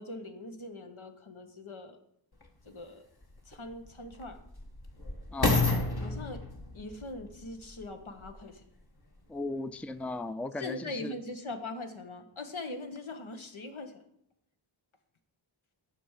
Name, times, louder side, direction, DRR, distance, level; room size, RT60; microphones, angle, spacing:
voice 1, 0.0-2.0 2.6-3.0 3.5-4.4 6.0-6.4 6.7-8.6 10.6-14.0, left 2 dB, 85° left, 5 dB, 1.3 m, -41 dB
sound 1, 2.4-2.5 3.2-8.5 9.2-9.3, left 3 dB, 50° left, 1.5 m, -32 dB
voice 2, 5.3-5.6 9.3-11.2, left 2 dB, 5° left, 13 dB, 0.4 m, -36 dB
10.0 x 5.2 x 7.4 m, 0.75 s
wide cardioid pair, 50°, 47 cm